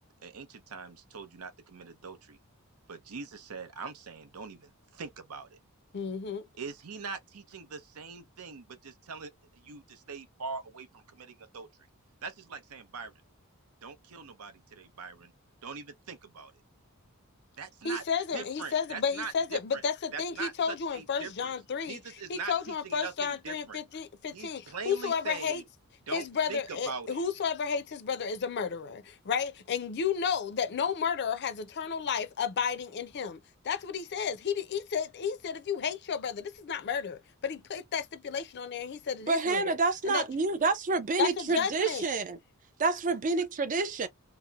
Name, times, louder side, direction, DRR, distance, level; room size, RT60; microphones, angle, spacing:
voice 1, 0.2-2.4 2.9-5.6 6.6-11.7 12.2-13.2 13.8-15.3 15.6-16.5 17.6-18.0 18.3-19.8 20.1-21.5 21.8-23.8 24.3-25.6 26.1-27.2, right 5 dB, 75° right, 0.7 m, -42 dB
voice 2, 5.9-6.5 17.8-22.0 22.3-25.6 26.1-33.4 33.6-39.7 40.1-40.2 41.2-42.1, left 6 dB, 50° left, 0.5 m, -32 dB
voice 3, 39.3-42.4 42.8-44.1, right 3 dB, 35° right, 0.4 m, -28 dB
2.8 x 2.1 x 2.3 m
head